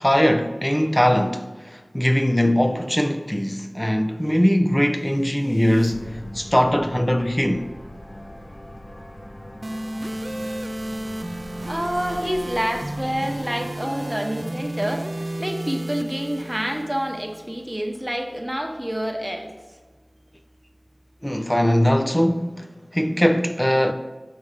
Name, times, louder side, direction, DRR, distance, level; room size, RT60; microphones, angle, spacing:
voice 1, 0.0-7.7 21.2-23.9, equal, 15° left, 0.7 m, -21 dB
sound 1, 4.9-15.1, left 1 dB, 60° left, 1.3 m, -42 dB
sound 2, 9.6-17.6, right 1 dB, 55° right, 0.4 m, -32 dB
voice 2, 11.7-19.5, equal, 15° right, 1.1 m, -28 dB
7.4 x 5.5 x 4.9 m
wide cardioid pair, 40°, 0 cm